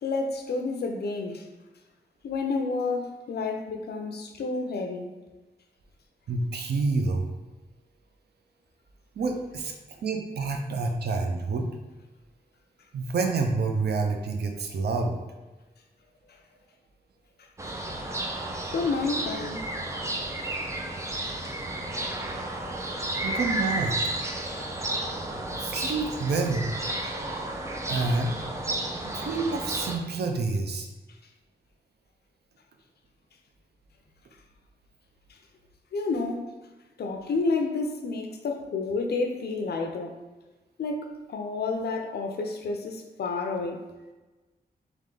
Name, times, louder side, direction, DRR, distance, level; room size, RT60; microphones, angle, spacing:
voice 1, 0.0-1.5 2.2-5.1 16.3-16.4 18.7-19.7 35.9-36.5 37.0-40.2 40.8-43.8, left 3 dB, 85° left, 4 dB, 0.5 m, -30 dB
voice 2, 6.3-7.3 9.2-11.7 12.9-15.2 23.2-24.0 25.6-26.7 27.9-28.4 29.0-30.9, right 3 dB, 85° right, 3 dB, 0.6 m, -28 dB
sound 1, 17.6-30.0, right 1 dB, 20° right, 0.5 m, -32 dB
3.5 x 3.1 x 3.7 m, 1.1 s
wide cardioid pair, 140°, 17 cm